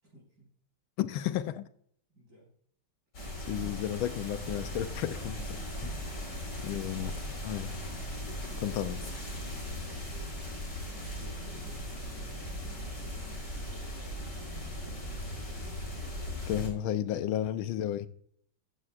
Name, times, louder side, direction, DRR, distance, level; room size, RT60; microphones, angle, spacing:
voice 1, 0.0-0.5 2.2-2.5 7.0-7.4 8.2-10.6 10.9-14.2 14.5-17.8, equal, 50° right, 5.8 m, -55 dB
voice 2, 1.0-1.7 3.5-6.0 6.6-7.1 7.4-7.8 8.6-9.0 16.5-18.1, left 11 dB, 80° left, 1.5 m, -33 dB
sound 1, 3.1-16.7, equal, 55° left, 4.7 m, -38 dB
14.5 x 11.0 x 2.4 m
omnidirectional pair, 2.2 m